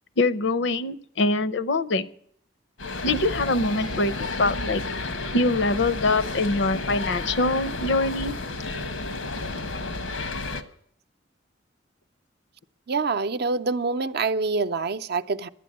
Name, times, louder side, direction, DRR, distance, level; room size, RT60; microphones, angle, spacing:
voice 1, 0.2-2.1 3.0-4.8 5.3-8.3, left 2 dB, 65° left, 15 dB, 0.7 m, -24 dB
sound 1, 2.8-10.6, left 3 dB, 90° left, 1.1 m, -31 dB
voice 2, 12.9-15.5, right 4 dB, 55° right, 11 dB, 0.6 m, -26 dB
11.5 x 9.2 x 8.6 m, 0.65 s
head